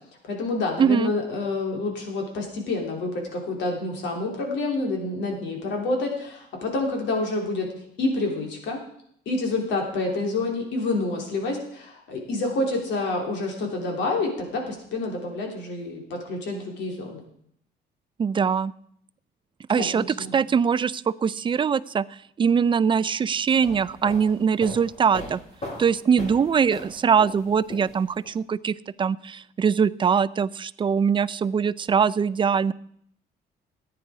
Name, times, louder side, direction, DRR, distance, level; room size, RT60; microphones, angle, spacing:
voice 1, 0.2-7.7 8.0-8.8 9.2-17.2 19.7-20.3, left 2 dB, 80° left, 1 dB, 3.3 m, -28 dB
voice 2, 0.8-1.1 18.2-18.7 19.7-20.0 20.3-22.1 22.4-25.4 25.8-32.7, right 6 dB, 25° right, 19 dB, 0.4 m, -22 dB
sound 1, 23.5-28.3, left 1 dB, 35° left, 3.3 m, -39 dB
14.0 x 9.5 x 4.9 m, 0.69 s
cardioid pair, 110°, 18 cm